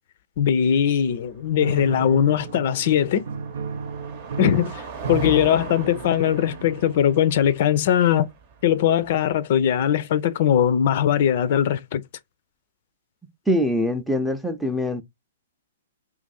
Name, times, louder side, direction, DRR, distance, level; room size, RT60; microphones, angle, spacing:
voice 1, 0.4-3.2 4.4-8.3 8.6-12.0, left 9 dB, 50° left, 0.4 m, -20 dB
Car passing by, 1.1-9.4, right 5 dB, 45° right, 0.9 m, -41 dB
Piano, 1.6-7.5, right 5 dB, 65° right, 0.5 m, -34 dB
voice 2, 13.5-15.0, left 1 dB, ahead, 0.6 m, -23 dB
2.8 x 2.5 x 3.9 m
figure-of-eight pair, 115°, 0 cm